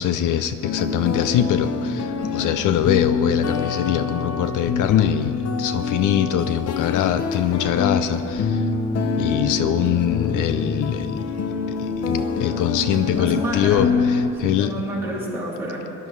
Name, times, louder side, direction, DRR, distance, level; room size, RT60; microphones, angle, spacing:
voice 1, 0.0-8.7 9.2-11.2 11.8-14.7, left 10 dB, 75° left, 11 dB, 0.6 m, -23 dB
sound 1, 0.6-14.3, left 4 dB, 50° left, 1.0 m, -25 dB
voice 2, 13.1-13.9 14.4-15.8, right 1 dB, 5° right, -7 dB, 3.4 m, -29 dB
21.0 x 11.0 x 4.7 m, 2.7 s
cardioid pair, 175°, 32 cm